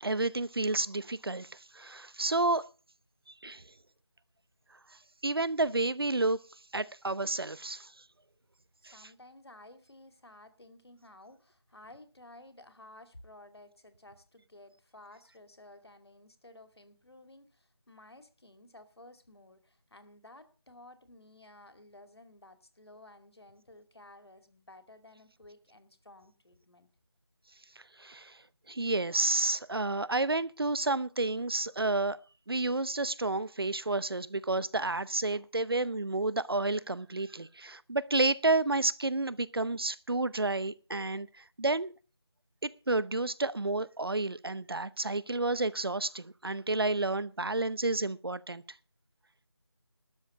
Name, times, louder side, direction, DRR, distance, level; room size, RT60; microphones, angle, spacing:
voice 1, 0.0-2.6 3.4-3.6 5.2-6.4 6.7-7.9 28.0-28.4 28.7-32.2 32.5-41.9 42.6-48.6, right 2 dB, 60° right, 0.8 m, -30 dB
voice 2, 8.8-26.9, left 1 dB, 70° left, 2.4 m, -54 dB
12.5 x 7.1 x 7.6 m
figure-of-eight pair, 180°, 14 cm